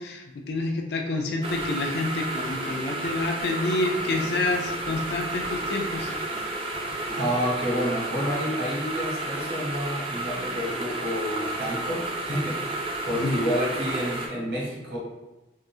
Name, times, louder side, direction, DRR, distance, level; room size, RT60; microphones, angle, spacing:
voice 1, 0.0-6.1 13.1-13.4, left 2 dB, 65° left, 2 dB, 0.4 m, -28 dB
sound 1, 1.4-14.3, right 2 dB, 30° right, 0.3 m, -32 dB
sound 2, 1.5-7.4, left 1 dB, 85° left, 1.0 m, -46 dB
voice 2, 7.2-15.0, equal, 65° right, -5 dB, 1.0 m, -29 dB
3.6 x 2.0 x 2.6 m, 1.1 s
head